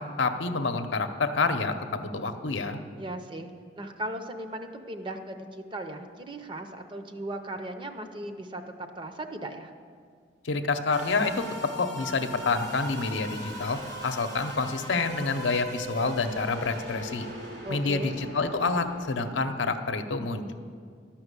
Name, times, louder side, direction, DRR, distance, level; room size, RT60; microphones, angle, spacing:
voice 1, 0.0-2.8 10.4-17.3 17.7-20.5, left 3 dB, 80° left, 7 dB, 0.7 m, -28 dB
voice 2, 3.0-3.5 3.8-9.7 17.6-18.2, right 1 dB, 25° right, 6 dB, 0.6 m, -37 dB
sound 1, 10.9-19.7, equal, 70° right, 3.3 m, -40 dB
12.0 x 5.9 x 8.2 m, 2.1 s
head